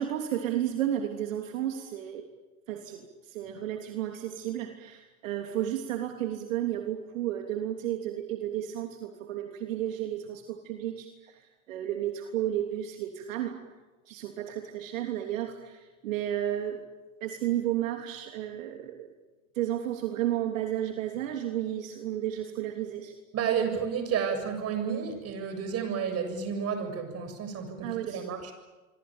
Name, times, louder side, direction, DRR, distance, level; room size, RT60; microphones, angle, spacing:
voice 1, 0.0-2.3 2.7-11.4 11.7-13.6 14.1-16.8 17.2-19.1 19.5-23.1 27.8-28.2, right 11 dB, 70° right, 4 dB, 3.2 m, -32 dB
voice 2, 23.3-28.5, right 7 dB, 35° right, 8 dB, 7.3 m, -31 dB
26.5 x 25.0 x 8.9 m, 1.2 s
hypercardioid pair, 100°, 41 cm